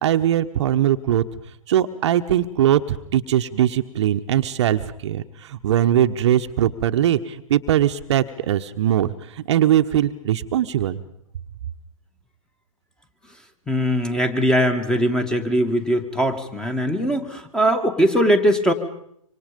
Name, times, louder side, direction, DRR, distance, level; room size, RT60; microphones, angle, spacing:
voice 1, 0.0-1.2 1.7-5.2 5.6-9.1 9.5-11.0, right 11 dB, 55° right, 8 dB, 1.2 m, -20 dB
voice 2, 13.7-18.7, equal, 5° left, 9 dB, 2.3 m, -20 dB
26.5 x 25.5 x 5.3 m, 0.73 s
hypercardioid pair, 125°, 18 cm